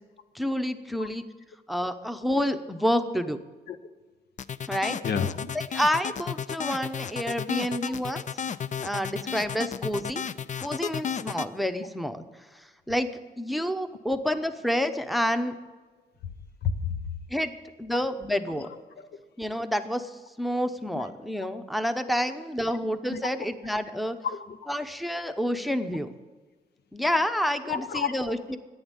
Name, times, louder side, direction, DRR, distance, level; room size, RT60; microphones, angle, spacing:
voice 1, 0.3-1.2 1.7-3.4 4.7-5.0 5.7-8.4 8.8-10.2 10.6-12.2 12.9-13.1 13.4-15.5 17.3-17.5 17.8-18.7 19.4-20.1 20.4-24.2 24.7-26.1 26.9-28.6, equal, ahead, 10 dB, 0.8 m, -28 dB
sound 1, 4.4-11.5, left 7 dB, 50° left, 0.4 m, -33 dB
voice 2, 5.0-5.5 7.9-8.0 8.5-8.6 16.6-17.0 20.9-21.1 22.7-22.8 23.1-23.2 24.2-24.6 27.7-28.1, left 6 dB, 90° left, 10 dB, 0.8 m, -30 dB
10.5 x 9.3 x 9.0 m, 1.3 s
cardioid pair, 90°, 17 cm